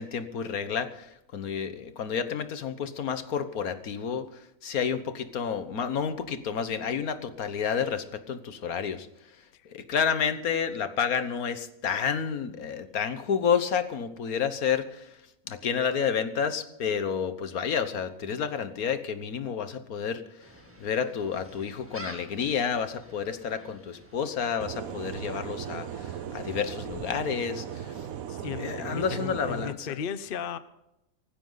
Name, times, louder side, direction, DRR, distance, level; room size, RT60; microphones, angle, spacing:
voice 1, 0.0-4.3 4.6-9.1 9.6-15.2 15.5-20.2 20.8-28.1 28.6-29.9, left 7 dB, 80° left, 11 dB, 1.6 m, -30 dB
Gull seagull, 20.4-28.2, equal, 10° right, 2.3 m, -50 dB
sound 1, 24.6-29.7, right 9 dB, 70° right, 1.2 m, -37 dB
voice 2, 28.3-30.6, left 8 dB, 45° left, 13 dB, 0.9 m, -35 dB
18.5 x 15.0 x 4.0 m, 0.85 s
omnidirectional pair, 1.5 m